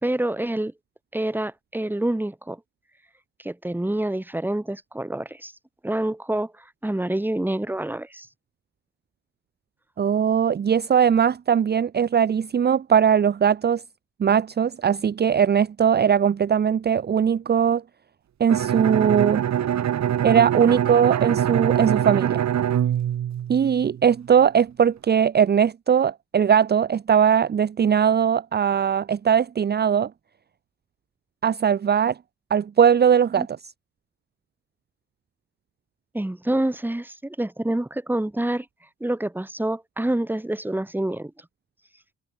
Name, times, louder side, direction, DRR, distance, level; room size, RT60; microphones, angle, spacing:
voice 1, 0.0-0.7 1.1-2.6 3.4-5.5 5.8-6.5 6.8-8.3 33.4-33.5 36.1-38.7 39.0-41.3, right 1 dB, 5° right, 1.8 m, -27 dB
voice 2, 10.0-13.8 14.2-17.8 18.4-19.4 20.2-22.4 23.5-30.1 31.4-32.1 32.5-33.7, right 8 dB, 35° right, 0.7 m, -20 dB
Bowed string instrument, 18.5-24.2, right 10 dB, 65° right, 4.7 m, -24 dB
cardioid pair, 90°, 30 cm